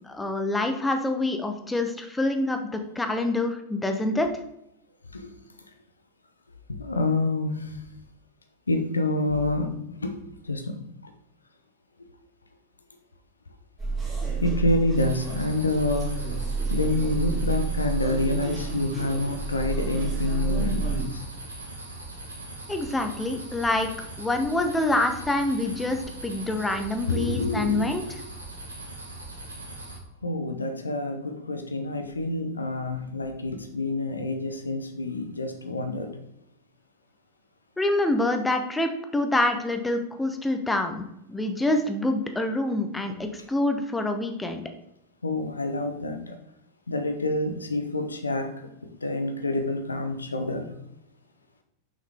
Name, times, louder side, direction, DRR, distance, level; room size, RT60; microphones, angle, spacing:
voice 1, 0.1-4.3 22.7-23.9 24.2-28.0 37.8-41.0 41.3-44.6, left 2 dB, 10° left, 6 dB, 0.8 m, -26 dB
voice 2, 6.7-7.8 8.7-10.2 10.4-10.8 12.0-12.1 14.4-16.1 16.7-21.2 27.1-28.2 30.2-36.1 45.2-46.4 46.9-48.5 48.8-50.7, left 2 dB, 80° left, 6 dB, 0.8 m, -27 dB
sound 1, 13.8-21.0, right 5 dB, 15° right, 2.8 m, -30 dB
sound 2, 14.9-30.0, right 2 dB, 80° right, 1.8 m, -40 dB
6.2 x 5.7 x 3.5 m, 0.80 s
figure-of-eight pair, 90°, 0 cm